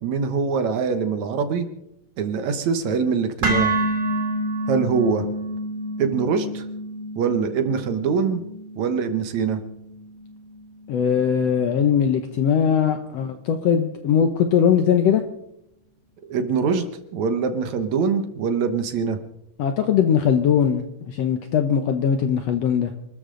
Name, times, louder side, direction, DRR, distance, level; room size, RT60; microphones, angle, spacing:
voice 1, 0.0-1.7 2.2-3.7 4.7-5.3 6.0-6.7 7.2-8.4 8.8-9.6 16.3-16.9 17.1-19.2, right 5 dB, 65° right, 8 dB, 2.3 m, -23 dB
sound 1, 3.4-11.5, right 1 dB, 25° right, 3.0 m, -29 dB
voice 2, 10.9-15.2 19.6-22.9, left 8 dB, 70° left, 8 dB, 1.6 m, -20 dB
26.5 x 13.5 x 3.8 m, 0.80 s
omnidirectional pair, 3.8 m